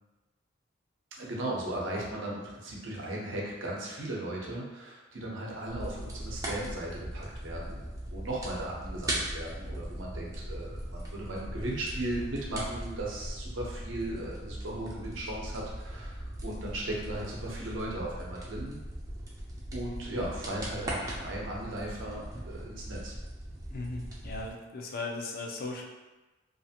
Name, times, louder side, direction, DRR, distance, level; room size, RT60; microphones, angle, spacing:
voice 1, 1.2-7.8 8.1-18.8 19.7-23.1, right 1 dB, 75° right, -3 dB, 0.7 m, -37 dB
sound 1, 5.7-24.5, right 1 dB, 15° right, 0.4 m, -39 dB
voice 2, 23.7-25.8, left 3 dB, 50° left, 0 dB, 0.4 m, -37 dB
2.5 x 2.4 x 2.7 m, 1.1 s
head